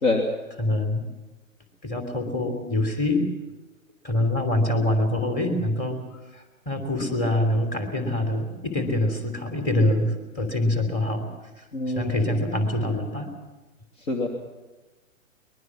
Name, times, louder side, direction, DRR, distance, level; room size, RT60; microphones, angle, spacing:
voice 1, 0.6-1.1 1.8-3.3 4.0-6.0 6.3-11.3 12.0-13.3, left 1 dB, 20° left, 6 dB, 3.4 m, -25 dB
voice 2, 11.7-12.1 14.1-14.3, left 2 dB, 65° left, 1 dB, 3.0 m, -24 dB
23.0 x 21.0 x 6.2 m, 1.1 s
figure-of-eight pair, 120°, 41 cm